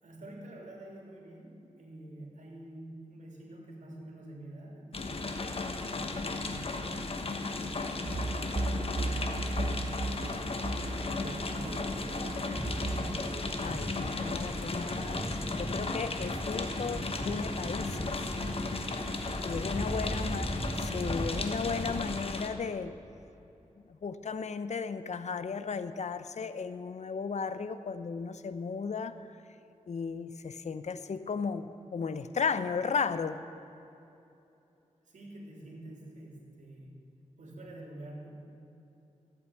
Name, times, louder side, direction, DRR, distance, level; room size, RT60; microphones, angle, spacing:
voice 1, 0.0-5.3 5.9-10.3 10.9-12.4 19.7-21.2 35.0-36.9 37.4-38.3, right 1 dB, 80° right, -1 dB, 3.0 m, -47 dB
sound 1, 4.9-22.5, left 3 dB, 50° left, 1.2 m, -35 dB
sound 2, 8.1-14.0, right 2 dB, 50° right, 0.9 m, -36 dB
sound 3, 12.5-22.3, right 1 dB, 5° right, 0.4 m, -39 dB
voice 2, 13.6-18.1 19.4-20.5 20.9-22.9 23.9-29.1 29.9-33.4, left 5 dB, 70° left, 12 dB, 0.7 m, -35 dB
13.5 x 8.8 x 8.2 m, 2.9 s
wide cardioid pair, 85°, 12 cm